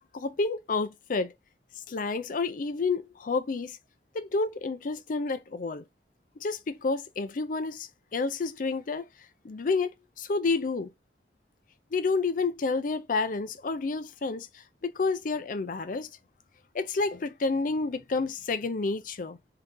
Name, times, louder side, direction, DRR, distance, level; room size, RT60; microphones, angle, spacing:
voice 1, 0.1-1.3 1.9-3.8 4.1-5.8 6.4-9.1 9.4-9.9 10.2-10.9 11.9-14.5 14.8-16.1 16.7-19.4, left 3 dB, 50° left, 0.4 m, -29 dB
3.7 x 2.8 x 3.7 m
head